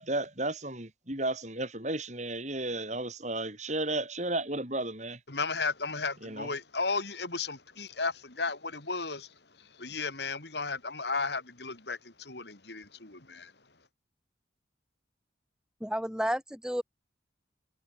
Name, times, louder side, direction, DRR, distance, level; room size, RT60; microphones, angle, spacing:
voice 1, 0.0-5.2 6.2-6.5, right 2 dB, 40° right, 6.5 m, -33 dB
voice 2, 5.3-13.5, left 4 dB, 65° left, 3.6 m, -34 dB
voice 3, 15.8-16.8, equal, 5° right, 6.0 m, -31 dB
head